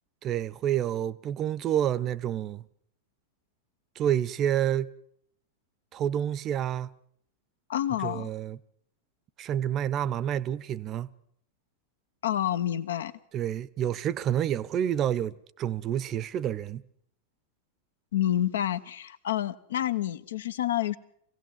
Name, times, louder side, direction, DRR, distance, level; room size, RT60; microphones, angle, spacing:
voice 1, 0.2-2.7 4.0-4.9 5.9-6.9 8.0-8.6 9.4-11.1 13.3-16.8, right 10 dB, 30° right, 0.8 m, -28 dB
voice 2, 7.7-8.3 12.2-13.1 18.1-21.0, left 11 dB, 60° left, 0.9 m, -28 dB
25.5 x 17.0 x 7.3 m
figure-of-eight pair, 90°, 0 cm